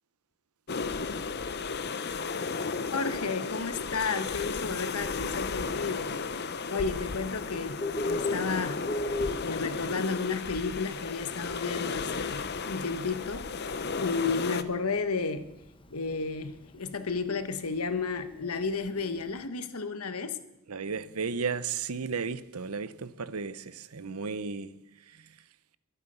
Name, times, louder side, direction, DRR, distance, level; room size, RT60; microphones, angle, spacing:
sound 1, 0.7-14.6, left 4 dB, 50° left, 0.8 m, -34 dB
voice 1, 2.9-6.4 6.7-15.4 15.9-20.4, left 4 dB, 90° left, 1.3 m, -33 dB
Bird, 7.3-19.4, left 1 dB, 25° left, 1.0 m, -39 dB
voice 2, 20.7-24.7 25.1-25.3, right 5 dB, 90° right, 0.8 m, -34 dB
23.0 x 8.4 x 5.6 m
head